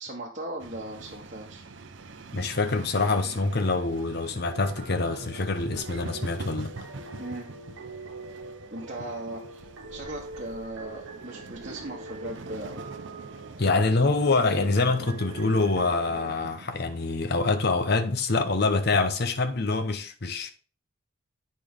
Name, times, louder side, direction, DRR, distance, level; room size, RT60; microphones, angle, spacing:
voice 1, 0.0-1.6 7.2-7.5 8.7-12.8, right 2 dB, 35° right, 1.1 m, -38 dB
sound 1, 0.6-19.8, right 3 dB, 60° right, 0.6 m, -44 dB
voice 2, 2.3-6.7 13.6-20.5, left 3 dB, 50° left, 0.7 m, -25 dB
sound 2, 4.5-16.3, right 2 dB, 80° right, 1.2 m, -44 dB
8.4 x 5.2 x 3.6 m
head